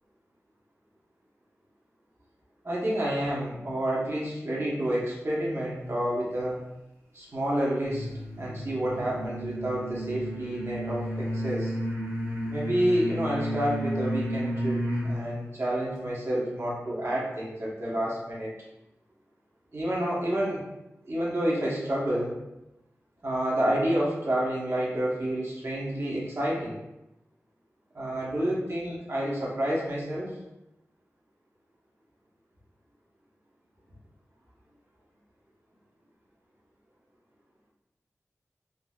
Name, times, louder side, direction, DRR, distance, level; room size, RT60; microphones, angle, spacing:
voice 1, 2.6-6.7 7.1-8.1 8.4-11.7 12.5-18.5 19.7-20.6 21.1-22.4 23.2-26.8 27.9-30.3, right 1 dB, 55° right, -6 dB, 1.2 m, -29 dB
sound 1, 7.8-15.2, equal, 75° right, 1.3 m, -32 dB
3.8 x 2.6 x 2.4 m, 0.93 s
wide cardioid pair, 55°, 5 cm